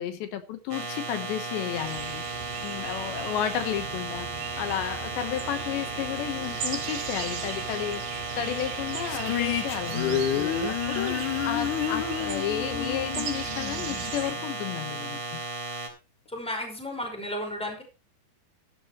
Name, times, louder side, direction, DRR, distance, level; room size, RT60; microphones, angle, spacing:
voice 1, 0.0-2.2 2.6-4.3 4.6-8.0 8.4-15.4, left 10 dB, 80° left, 9 dB, 3.5 m, -32 dB
sound 1, 0.7-15.9, right 3 dB, 35° right, 4.1 m, -35 dB
sound 2, 1.8-14.3, right 8 dB, 75° right, 4.1 m, -39 dB
sound 3, 9.1-14.4, left 9 dB, 55° left, 2.6 m, -30 dB
voice 2, 16.3-17.8, left 1 dB, ahead, 2 dB, 4.9 m, -33 dB
14.5 x 12.5 x 3.1 m, 0.32 s
omnidirectional pair, 5.0 m